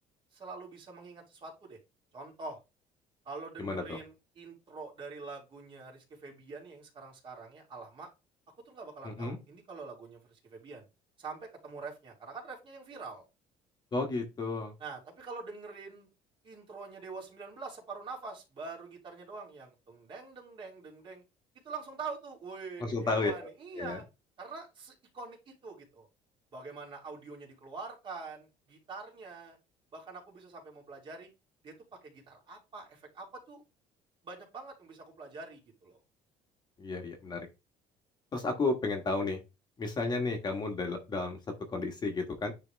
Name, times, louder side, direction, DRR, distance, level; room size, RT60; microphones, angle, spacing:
voice 1, 0.3-1.8 2.1-2.6 3.2-8.1 8.6-10.9 11.2-13.2 14.8-16.1 16.4-21.2 21.6-24.0 24.4-26.1 26.5-29.6 29.9-31.3 31.6-31.7 32.0-33.6 34.2-36.0, right 4 dB, 35° right, -1 dB, 3.0 m, -45 dB
voice 2, 3.6-4.0 9.0-9.4 13.9-14.7 22.8-23.3 23.8-24.0 36.8-37.5 38.3-39.4 39.8-41.4 41.7-42.5, left 3 dB, 30° left, 4 dB, 1.5 m, -32 dB
9.7 x 3.4 x 3.4 m, 0.26 s
cardioid pair, 135°, 14 cm